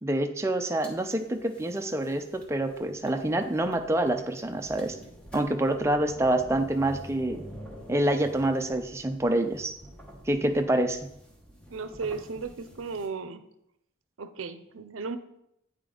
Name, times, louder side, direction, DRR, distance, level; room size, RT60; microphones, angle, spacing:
voice 1, 0.0-5.0 5.3-7.5 7.9-9.7 10.3-11.0, right 1 dB, 15° right, 5 dB, 0.5 m, -27 dB
sound 1, 0.7-13.1, equal, 5° left, 0.9 m, -48 dB
voice 2, 11.7-13.4 14.2-15.2, right 4 dB, 80° right, 12 dB, 0.6 m, -35 dB
8.8 x 5.1 x 3.8 m, 0.79 s
head